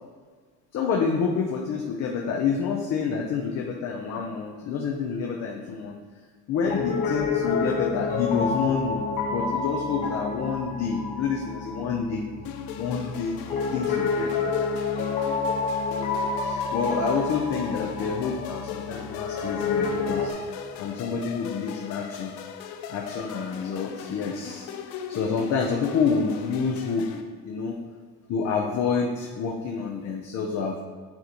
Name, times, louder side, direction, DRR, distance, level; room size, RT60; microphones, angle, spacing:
voice 1, 0.7-6.0 6.5-12.2 12.8-13.4 13.7-14.5 16.4-22.3 22.9-27.1 27.4-27.7 28.3-30.8, left 5 dB, 40° left, 0 dB, 0.6 m, -28 dB
Piano, 6.6-20.3, left 4 dB, 60° left, 1.4 m, -29 dB
sound 1, 12.4-27.2, left 8 dB, 90° left, 0.7 m, -39 dB
9.6 x 3.8 x 2.9 m, 1.5 s
cardioid pair, 160°, 39 cm